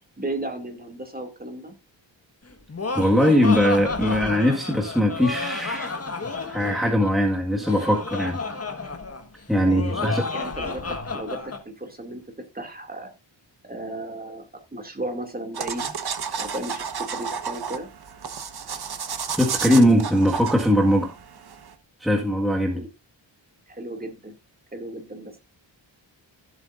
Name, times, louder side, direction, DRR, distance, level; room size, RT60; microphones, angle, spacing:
voice 1, 0.2-1.7 9.6-12.2 12.5-13.1 13.7-15.9 16.4-17.9 22.7-22.9 23.7-24.3 24.7-25.4, right 1 dB, 20° right, 2.5 m, -35 dB
Laughter, 2.5-11.6, left 3 dB, 30° left, 1.6 m, -31 dB
voice 2, 2.9-5.9 6.4-8.4 9.5-10.2 19.3-21.2 22.0-22.8, equal, ahead, 1.8 m, -20 dB
sound 1, 15.5-21.7, right 6 dB, 55° right, 1.3 m, -32 dB
15.5 x 8.1 x 2.6 m
wide cardioid pair, 120°, 45 cm